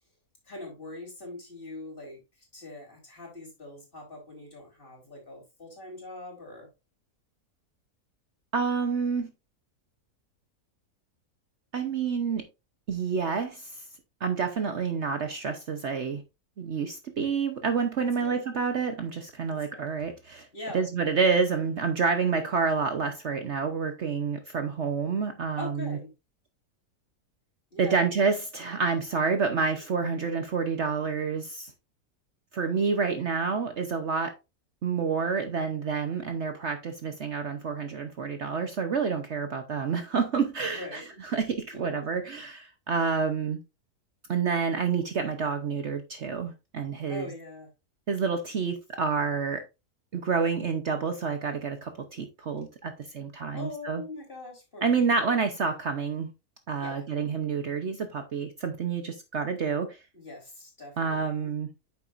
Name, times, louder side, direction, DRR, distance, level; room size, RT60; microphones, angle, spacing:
voice 1, 0.4-6.7 18.0-18.4 19.5-19.9 20.5-20.9 25.6-26.1 27.7-28.1 40.7-41.0 41.7-42.0 47.1-47.7 53.5-55.3 56.8-57.1 60.1-61.5, left 2 dB, 35° left, 4.3 m, -42 dB
voice 2, 8.5-9.3 11.7-12.5 12.9-13.8 14.2-16.2 16.6-20.5 20.7-26.0 27.8-31.7 32.5-34.4 34.8-41.0 41.3-43.6 44.3-47.3 48.1-49.6 50.1-54.0 54.8-56.3 56.7-60.0 61.0-61.7, right 5 dB, 55° right, 1.1 m, -28 dB
9.3 x 7.0 x 2.5 m
omnidirectional pair, 1.6 m